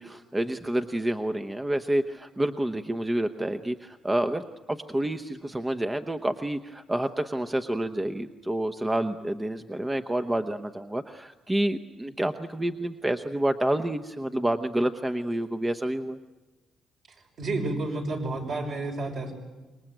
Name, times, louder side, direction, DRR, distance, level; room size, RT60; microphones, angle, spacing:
voice 1, 0.0-16.2, right 1 dB, 15° right, 8 dB, 0.9 m, -28 dB
voice 2, 17.4-19.3, right 2 dB, 55° right, 2 dB, 5.9 m, -30 dB
26.0 x 21.5 x 9.1 m, 1.2 s
cardioid pair, 90°, 0 cm